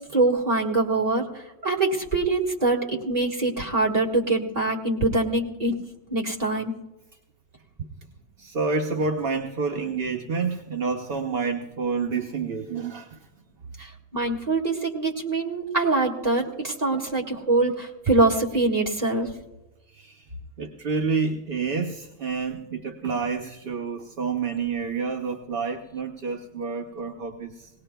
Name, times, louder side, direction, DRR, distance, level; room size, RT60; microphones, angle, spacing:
voice 1, 0.1-5.8 6.1-6.7 13.8-19.3, right 2 dB, 40° right, -1 dB, 1.9 m, -24 dB
voice 2, 8.4-13.2 16.9-17.0 19.9-20.3 20.6-27.7, right 5 dB, 60° right, 3 dB, 1.0 m, -29 dB
20.5 x 18.0 x 2.3 m, 1.0 s
omnidirectional pair, 1.1 m